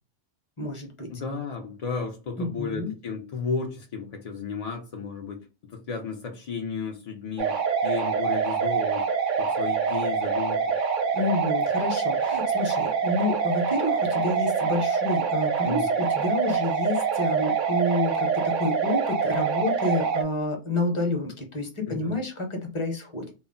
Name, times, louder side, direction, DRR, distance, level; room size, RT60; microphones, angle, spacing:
voice 1, 0.6-1.1 2.4-2.9 11.1-23.3, left 2 dB, 30° left, 3 dB, 0.7 m, -29 dB
voice 2, 1.1-5.4 5.7-7.5 7.8-9.0 9.4-10.8 15.6-15.9 21.9-22.2, left 5 dB, 65° left, 2 dB, 0.3 m, -33 dB
sound 1, 7.4-20.2, right 6 dB, 60° right, 0.5 m, -25 dB
2.2 x 2.0 x 3.6 m, 0.31 s
omnidirectional pair, 1.2 m